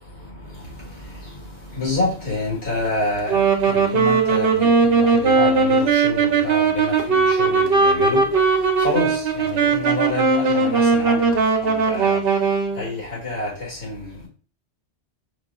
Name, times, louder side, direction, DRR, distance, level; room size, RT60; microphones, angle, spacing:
voice 1, 0.2-12.2 12.7-14.3, left 2 dB, 70° left, 1.8 m, -28 dB
Wind instrument woodwind instrument, 3.2-12.9, right 4 dB, 60° right, 0.8 m, -19 dB
4.5 x 2.8 x 2.4 m
omnidirectional pair, 1.2 m